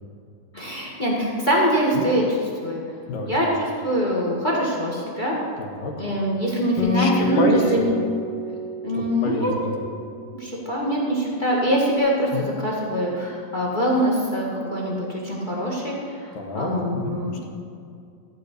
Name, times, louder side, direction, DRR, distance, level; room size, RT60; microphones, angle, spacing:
voice 1, 0.5-2.8 3.2-5.3 6.0-8.0 8.8-9.5 10.4-17.3, equal, 45° left, -4 dB, 0.6 m, -23 dB
voice 2, 5.6-5.9 6.9-7.9 8.9-9.7 12.3-12.5 16.4-17.5, left 2 dB, 70° left, 1 dB, 2.9 m, -28 dB
Acoustic guitar, 6.8-10.5, equal, 90° left, 3.7 m, -29 dB
15.5 x 5.3 x 8.1 m, 2.4 s
omnidirectional pair, 4.3 m